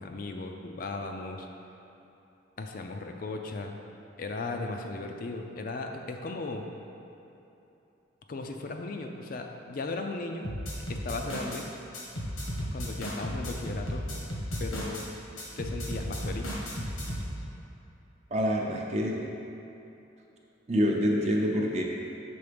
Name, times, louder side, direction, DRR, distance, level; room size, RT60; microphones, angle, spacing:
voice 1, 0.0-1.5 2.6-3.8 4.2-6.7 8.3-10.5 10.9-11.7 12.7-14.0 14.6-15.1 15.6-16.6, left 3 dB, 45° left, 3 dB, 0.4 m, -36 dB
sound 1, 10.4-11.6 11.9-15.1 15.4-17.3, equal, 90° left, 1.4 m, -34 dB
voice 2, 18.3-19.2 20.7-21.8, equal, 35° right, 0 dB, 0.6 m, -26 dB
7.0 x 3.8 x 5.1 m, 2.9 s
head